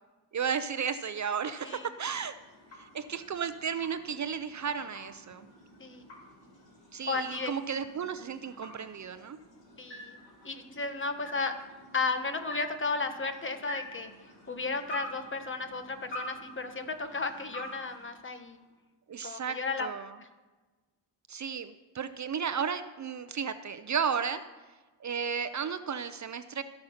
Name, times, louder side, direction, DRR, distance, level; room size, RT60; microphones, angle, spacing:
voice 1, 0.3-2.3 2.7-5.5 6.9-9.4 19.1-20.1 21.3-24.4 25.0-26.6, right 7 dB, 45° right, 11 dB, 0.5 m, -34 dB
sound 1, 1.1-18.8, equal, 90° left, 4.3 m, -48 dB
voice 2, 7.1-7.5 9.8-10.2 10.4-11.5 11.9-14.1 14.5-18.6 19.2-19.9 20.2-20.3, left 4 dB, 30° left, 8 dB, 1.1 m, -34 dB
16.5 x 6.7 x 5.7 m, 1.3 s
wide cardioid pair, 120°, 43 cm